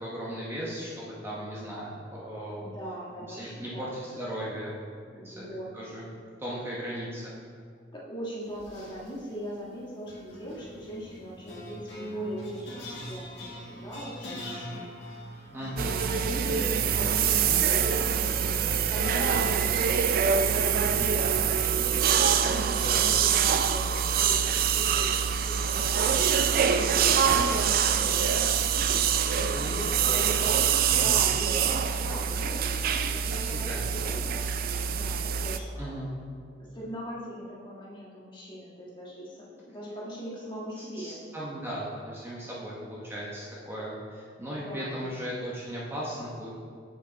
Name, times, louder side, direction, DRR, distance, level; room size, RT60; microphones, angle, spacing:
voice 1, 0.0-2.6 3.3-4.8 5.1-5.4 5.7-6.0 6.4-7.3 15.5-16.0 22.7-23.1 29.2-30.6 30.9-31.2 33.4-33.9 35.8-36.1 41.0-46.5, equal, 15° right, -6 dB, 1.0 m, -37 dB
voice 2, 2.6-3.9 5.1-5.7 7.9-13.5 13.7-14.9 15.3-15.5 15.8-30.1 30.8-34.6 34.8-35.9 36.6-41.2 44.5-45.1, equal, 25° left, -6 dB, 1.5 m, -40 dB
sound 1, 8.5-9.1 10.1-21.7, equal, 65° left, 1.8 m, -40 dB
sound 2, 15.8-35.6, right 7 dB, 50° right, 0.3 m, -25 dB
7.3 x 6.0 x 3.9 m, 2.1 s
head